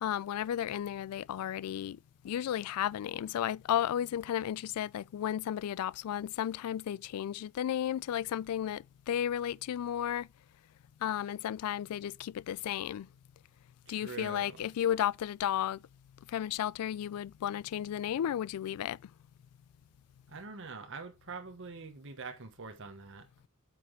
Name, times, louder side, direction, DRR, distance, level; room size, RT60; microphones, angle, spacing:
voice 1, 0.0-2.0 2.2-10.3 11.0-13.1 13.9-15.8 16.3-19.0, left 10 dB, 90° left, 0.3 m, -33 dB
voice 2, 13.9-14.7 20.3-23.3, right 4 dB, 60° right, 1.3 m, -44 dB
8.6 x 6.0 x 3.3 m
head